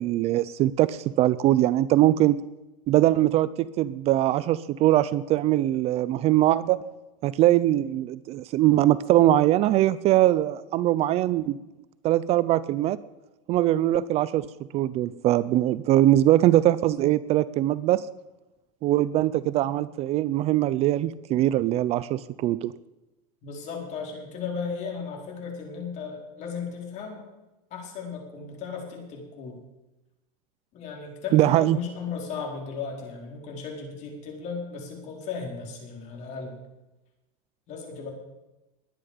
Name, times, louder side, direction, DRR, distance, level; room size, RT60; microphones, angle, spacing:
voice 1, 0.0-2.4 2.9-6.8 7.2-11.6 12.0-13.0 13.5-14.5 14.7-18.1 18.8-22.7 31.3-31.8, right 14 dB, 35° right, 17 dB, 0.4 m, -22 dB
voice 2, 23.4-27.2 27.7-29.6 30.7-36.6 37.7-38.1, left 5 dB, 40° left, 1 dB, 4.5 m, -36 dB
21.0 x 9.8 x 5.1 m, 1.0 s
supercardioid pair, 145°, 18 cm